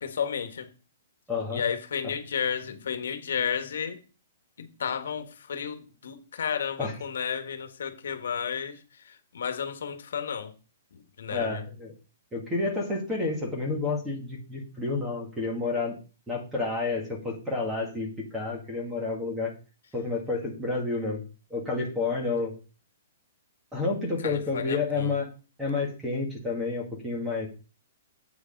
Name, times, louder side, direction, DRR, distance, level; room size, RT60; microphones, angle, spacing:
voice 1, 0.0-0.7 1.5-4.0 4.6-10.5 10.9-11.6 24.2-25.1, left 7 dB, 70° left, 1.4 m, -32 dB
voice 2, 1.3-1.6 6.8-6.9 11.3-11.9 12.3-16.0 16.3-19.5 19.9-21.2 21.5-22.5 23.7-25.3 25.6-27.5, left 3 dB, 5° right, 1.7 m, -30 dB
8.2 x 6.5 x 5.2 m
hypercardioid pair, 180°, 0 cm